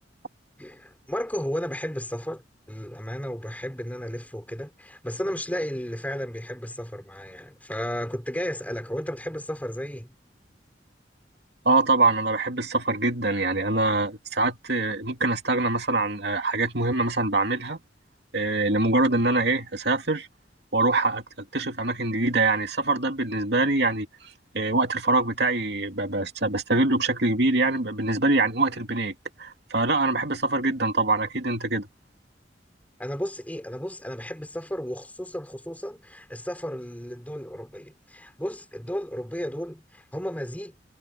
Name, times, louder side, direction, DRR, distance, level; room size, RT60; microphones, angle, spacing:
voice 1, 0.6-2.4 2.7-10.1 33.0-40.7, equal, 10° left, 5.6 m, -33 dB
voice 2, 11.6-17.8 18.3-20.3 20.7-21.2 21.5-24.1 24.5-29.1 29.4-31.9, right 2 dB, 65° right, 2.8 m, -24 dB
head